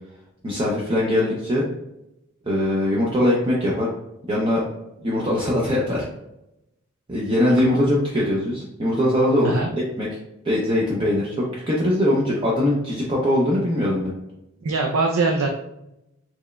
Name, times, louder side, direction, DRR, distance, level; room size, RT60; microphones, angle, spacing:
voice 1, 0.4-1.7 2.5-3.9 4.3-4.6 5.0-6.1 7.1-10.1 10.4-14.1, left 1 dB, 25° right, -4 dB, 0.5 m, -21 dB
voice 2, 14.6-15.5, right 3 dB, 80° right, 1 dB, 0.5 m, -21 dB
4.5 x 3.0 x 2.2 m, 0.87 s
head